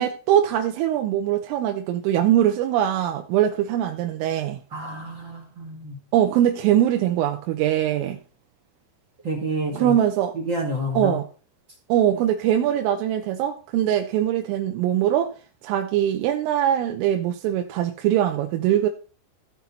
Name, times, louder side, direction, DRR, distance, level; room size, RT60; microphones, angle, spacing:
voice 1, 0.0-4.6 6.1-8.2 9.7-10.3 11.0-11.2 11.9-15.3 15.6-18.9, right 11 dB, 90° right, 3.4 m, -22 dB
voice 2, 4.7-6.0 9.2-9.9 10.3-11.2, right 1 dB, 35° right, 2.0 m, -29 dB
15.5 x 6.1 x 4.2 m
omnidirectional pair, 5.7 m